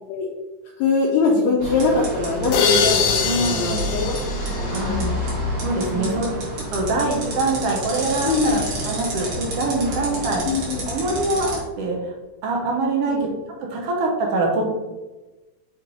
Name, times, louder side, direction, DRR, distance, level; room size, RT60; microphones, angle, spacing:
voice 1, 0.8-4.1 4.6-5.1 5.8-6.2 8.3-8.6 10.4-10.8 13.1-13.3, left 4 dB, 70° left, -3 dB, 1.8 m, -22 dB
sound 1, 1.6-11.6, equal, 45° right, 2.1 m, -29 dB
sound 2, 2.5-5.4, left 6 dB, 90° left, 2.3 m, -24 dB
voice 2, 3.2-3.9 4.7-5.1 5.6-6.3 6.7-10.4 10.9-12.1 12.4-13.2 13.7-14.8, right 2 dB, 70° right, 0 dB, 1.5 m, -24 dB
7.6 x 3.1 x 4.0 m, 1.1 s
omnidirectional pair, 3.6 m